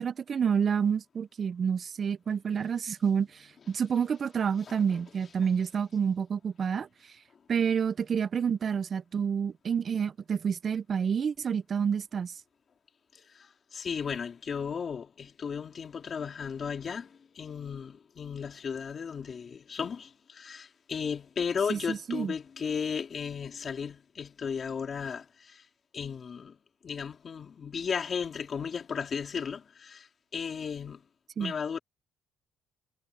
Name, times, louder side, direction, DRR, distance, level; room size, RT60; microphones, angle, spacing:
voice 1, 0.0-6.9 7.5-12.3 21.7-22.3 31.4-31.5, right 7 dB, 40° right, 0.5 m, -29 dB
voice 2, 13.1-25.6 25.9-26.6 26.8-30.1 30.3-31.0 31.4-31.8, left 6 dB, 40° left, 2.9 m, -35 dB
cardioid pair, 105°, 0 cm